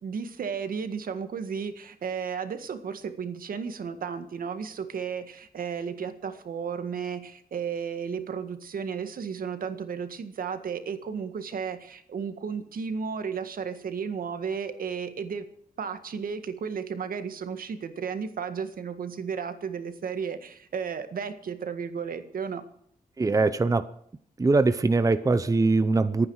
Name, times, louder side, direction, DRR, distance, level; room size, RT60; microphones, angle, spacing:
voice 1, 0.0-15.5 15.8-22.6, right 6 dB, 75° right, 9 dB, 1.8 m, -33 dB
voice 2, 23.2-23.9 24.4-26.3, right 3 dB, 20° right, 12 dB, 0.7 m, -22 dB
25.0 x 9.6 x 4.8 m, 0.65 s
wide cardioid pair, 110°, 15 cm